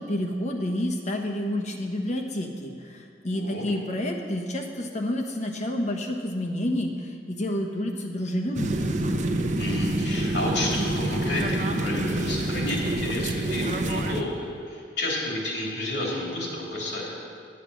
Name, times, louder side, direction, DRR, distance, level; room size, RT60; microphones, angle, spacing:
voice 1, 0.0-8.9, left 1 dB, 40° left, 1 dB, 1.1 m, -29 dB
voice 2, 3.3-3.6 9.6-17.1, left 1 dB, 80° left, -3 dB, 2.8 m, -31 dB
sound 1, 8.5-14.2, right 1 dB, 45° right, 0.7 m, -27 dB
9.6 x 8.3 x 6.2 m, 2.3 s
head